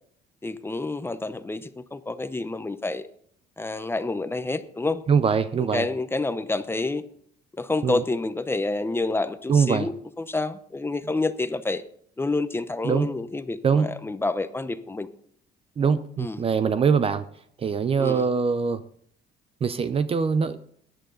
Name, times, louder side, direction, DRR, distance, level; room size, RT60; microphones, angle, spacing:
voice 1, 0.4-3.0 3.6-5.0 5.7-7.0 7.6-9.9 10.3-11.8 12.2-15.1 16.2-16.4 18.0-18.2, left 2 dB, 15° left, 11 dB, 0.8 m, -28 dB
voice 2, 5.1-5.9 7.8-8.0 9.5-9.9 11.0-11.1 12.8-13.1 13.6-13.9 15.8-17.2 17.6-18.8 19.6-20.6, right 6 dB, 35° right, 12 dB, 0.6 m, -23 dB
15.5 x 11.0 x 3.9 m, 0.63 s
cardioid pair, 110°, 17 cm